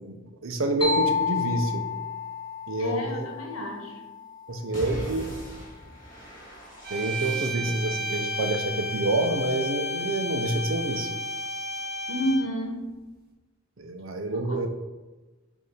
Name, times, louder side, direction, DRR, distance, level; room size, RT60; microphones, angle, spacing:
voice 1, 0.0-1.9 2.7-3.3 4.5-5.3 6.9-11.1 13.8-14.7, right 2 dB, 75° right, 5 dB, 0.7 m, -28 dB
sound 1, 0.8-4.5, left 5 dB, 20° left, 0.7 m, -30 dB
voice 2, 2.8-4.0 12.1-12.9 14.3-14.7, left 1 dB, 80° left, 0 dB, 1.4 m, -30 dB
sound 2, 4.7-8.0, equal, 40° left, 1.6 m, -40 dB
sound 3, 6.8-12.6, left 1 dB, 50° right, 1.1 m, -32 dB
6.9 x 2.8 x 4.9 m, 1.2 s
head